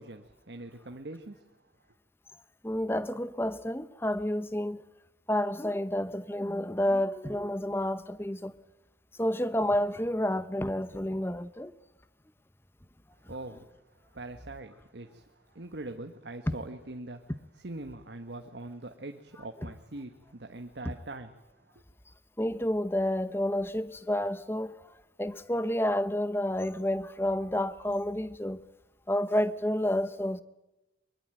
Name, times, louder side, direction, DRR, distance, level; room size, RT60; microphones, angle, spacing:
voice 1, 0.0-1.4 13.3-13.6 14.1-17.2 17.6-21.8, right 2 dB, 85° right, 1.4 m, -43 dB
voice 2, 2.6-4.8 5.3-8.5 9.2-11.7 22.4-24.8 25.2-28.6 29.1-30.4, left 1 dB, 15° left, 0.9 m, -30 dB
24.0 x 22.5 x 9.0 m
head